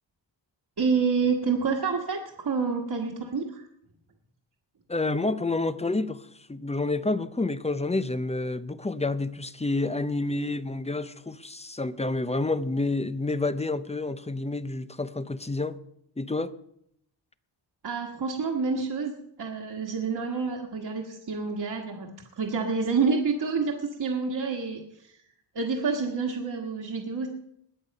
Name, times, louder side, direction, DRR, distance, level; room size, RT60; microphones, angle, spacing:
voice 1, 0.8-3.7 17.8-19.1 19.4-22.1 22.4-25.2 25.5-27.3, right 5 dB, 55° right, 1.6 m, -28 dB
voice 2, 4.9-15.8 16.2-16.5, left 2 dB, 15° left, 0.6 m, -29 dB
20.5 x 8.1 x 5.3 m
wide cardioid pair, 110°, 45 cm